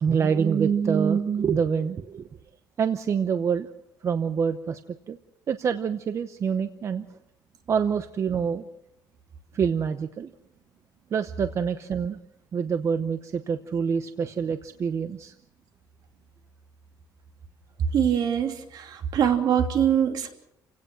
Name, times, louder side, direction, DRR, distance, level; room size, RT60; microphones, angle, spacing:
voice 1, 0.0-2.3 2.8-3.7 4.0-4.8 5.1-5.2 5.5-7.1 7.7-8.7 9.5-10.3 11.1-12.2 12.5-15.3, right 6 dB, 40° right, 10 dB, 0.8 m, -26 dB
voice 2, 17.9-20.3, right 9 dB, 65° right, 4 dB, 3.0 m, -23 dB
30.0 x 17.0 x 6.2 m, 0.83 s
cardioid pair, 160°, 8 cm